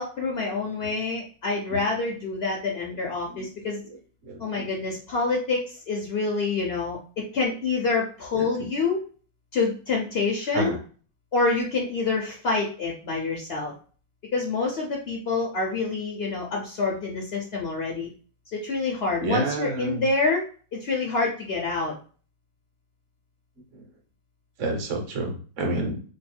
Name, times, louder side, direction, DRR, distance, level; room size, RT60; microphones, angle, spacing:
voice 1, 0.0-3.8 4.4-9.0 9.5-10.8 11.3-13.7 14.3-18.1 18.5-20.4 20.7-21.9, left 3 dB, 70° left, -1 dB, 0.5 m, -27 dB
voice 2, 3.3-4.7 8.3-8.7 10.5-10.8 19.2-20.1 23.7-23.8 24.6-26.0, right 2 dB, 55° right, 1 dB, 1.0 m, -31 dB
3.2 x 2.3 x 4.3 m, 0.40 s
omnidirectional pair, 2.0 m